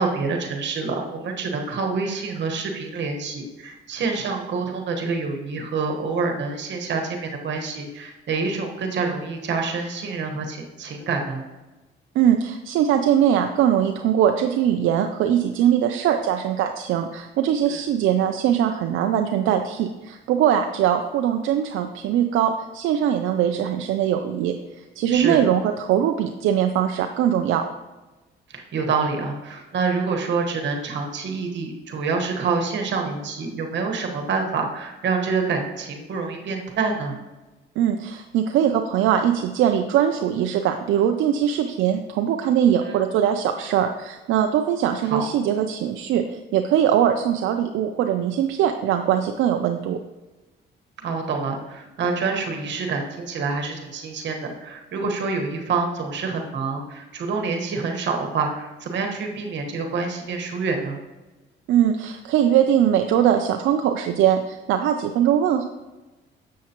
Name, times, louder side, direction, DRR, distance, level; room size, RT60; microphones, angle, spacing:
voice 1, 0.0-11.4 17.7-17.8 25.1-25.4 28.5-37.2 42.9-43.0 45.0-45.2 51.0-61.0, right 4 dB, 65° right, 2 dB, 1.3 m, -27 dB
voice 2, 12.2-24.5 25.0-27.6 37.8-46.2 46.5-50.0 61.7-65.6, right 9 dB, 85° right, 5 dB, 0.5 m, -21 dB
7.4 x 6.5 x 2.9 m, 1.1 s
cardioid pair, 90°, 20 cm